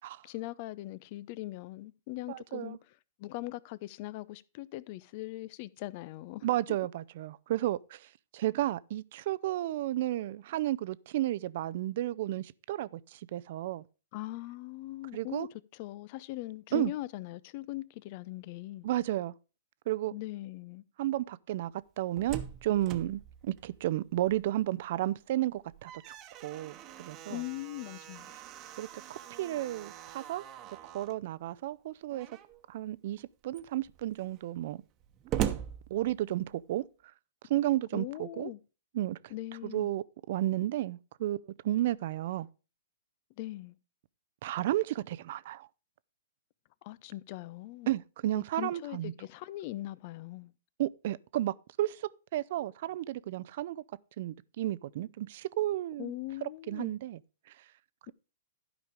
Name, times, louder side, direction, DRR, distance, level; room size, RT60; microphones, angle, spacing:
voice 1, 0.2-2.8 3.2-6.8 14.1-18.9 20.1-20.8 27.3-28.3 37.9-38.6 39.3-39.9 43.4-43.8 46.8-47.9 48.3-50.5 56.0-56.9, left 17 dB, 45° left, 0.5 m, -40 dB
voice 2, 2.3-2.8 6.4-13.8 15.1-15.5 16.7-16.9 18.8-19.3 19.9-20.1 21.0-21.7 22.0-26.2 26.4-27.4 28.8-30.4 30.8-32.3 32.7-34.8 35.9-36.8 37.4-38.5 38.9-39.3 39.6-42.5 44.4-45.7 47.9-49.1 50.8-53.8 54.2-56.1 56.7-57.2, right 14 dB, 55° right, 0.5 m, -33 dB
Slam, 21.9-24.7 25.0-25.1 25.6-31.2 32.1-32.6 33.2-33.3 33.5-36.6, right 10 dB, 30° right, 1.0 m, -41 dB
12.0 x 5.1 x 4.9 m
hypercardioid pair, 120°, 0 cm